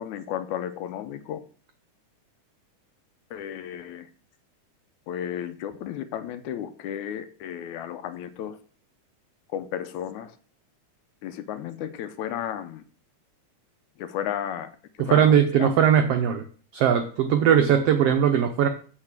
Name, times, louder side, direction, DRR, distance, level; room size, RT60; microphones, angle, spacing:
voice 1, 0.0-1.4 3.3-4.1 5.1-8.6 9.5-10.4 11.2-12.8 14.0-15.7, left 10 dB, 75° left, 11 dB, 1.9 m, -33 dB
voice 2, 15.0-16.4 16.7-18.7, right 8 dB, 80° right, 7 dB, 1.3 m, -20 dB
8.7 x 4.5 x 7.4 m, 0.42 s
omnidirectional pair, 3.7 m